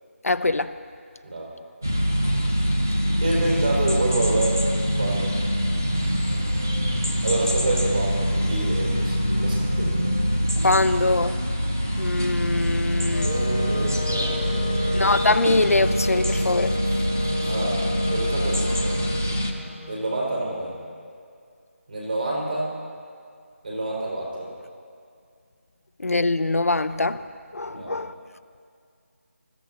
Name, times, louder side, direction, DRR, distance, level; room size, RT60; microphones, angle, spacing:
voice 1, 0.2-0.7 10.6-11.4 12.0-13.3 14.9-16.8 26.0-27.2 27.5-28.1, left 2 dB, 90° left, 0.7 m, -23 dB
sound 1, 1.8-19.5, equal, 10° right, 0.4 m, -24 dB
voice 2, 3.2-4.6 4.9-5.3 7.2-9.9 13.1-14.9 17.2-18.9 19.9-20.7 21.9-22.7 23.6-24.5 27.7-28.0, right 2 dB, 40° right, 5.1 m, -28 dB
Wind instrument woodwind instrument, 13.1-21.1, left 1 dB, 30° left, 1.1 m, -32 dB
26.5 x 15.0 x 2.9 m
figure-of-eight pair, 180°, 8 cm